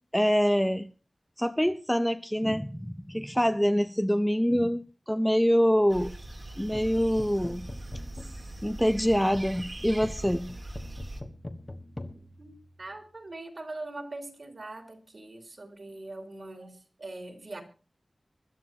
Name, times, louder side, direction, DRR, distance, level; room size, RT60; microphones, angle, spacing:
voice 1, 0.1-0.9 1.4-6.1 6.6-7.7 8.6-10.5, equal, 5° left, 0.7 m, -25 dB
sound 1, 5.9-11.2, right 1 dB, 40° right, 2.1 m, -41 dB
sound 2, 6.6-13.2, left 1 dB, 30° left, 1.5 m, -44 dB
voice 2, 12.4-17.6, right 2 dB, 55° right, 3.4 m, -42 dB
24.0 x 12.0 x 2.9 m
wide cardioid pair, 85°, 0 cm